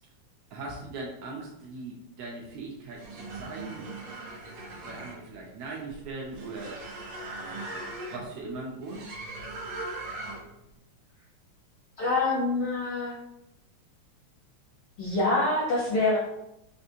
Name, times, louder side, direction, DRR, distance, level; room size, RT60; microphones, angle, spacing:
voice 1, 0.5-3.9 4.8-6.8 8.1-9.1, right 3 dB, 80° right, -2 dB, 1.4 m, -39 dB
sound 1, 2.8-10.6, right 2 dB, 65° right, 2.0 m, -40 dB
voice 2, 12.0-13.1 15.0-16.2, left 2 dB, 75° left, -5 dB, 1.2 m, -25 dB
4.9 x 2.6 x 2.7 m, 0.84 s
omnidirectional pair, 3.3 m